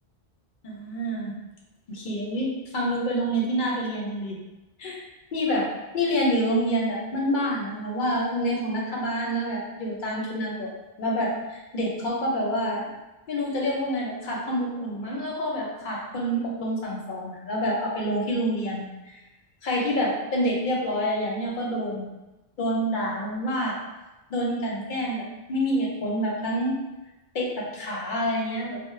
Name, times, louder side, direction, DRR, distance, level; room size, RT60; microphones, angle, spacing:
voice 1, 0.6-1.3 1.9-4.4 4.8-5.0 5.3-5.7 5.9-10.7 11.0-12.9 13.3-18.9 19.6-22.1 22.6-23.8 24.3-26.8 27.3-28.8, equal, 55° left, -3 dB, 0.7 m, -27 dB
2.3 x 2.0 x 3.0 m, 1.0 s
omnidirectional pair, 1.1 m